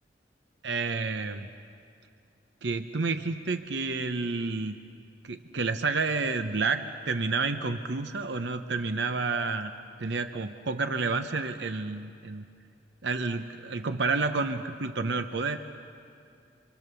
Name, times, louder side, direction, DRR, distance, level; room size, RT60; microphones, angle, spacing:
voice 1, 0.6-1.5 2.6-4.8 5.2-9.7 10.0-12.4 13.0-15.6, right 4 dB, 80° right, 8 dB, 0.8 m, -30 dB
29.5 x 25.0 x 6.9 m, 2.4 s
head